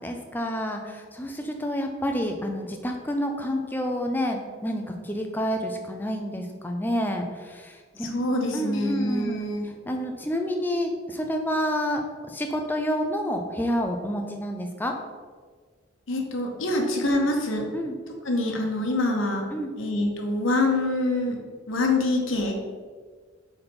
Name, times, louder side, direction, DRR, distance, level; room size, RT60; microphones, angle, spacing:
voice 1, 0.0-8.2 8.5-15.0 16.7-16.8 17.7-18.0 19.5-19.7, equal, 10° left, 3 dB, 0.5 m, -29 dB
voice 2, 8.0-9.7 16.1-17.7 18.2-19.4 19.8-21.4 21.7-22.5, left 2 dB, 75° left, 2 dB, 1.0 m, -25 dB
4.3 x 4.1 x 5.2 m, 1.5 s
head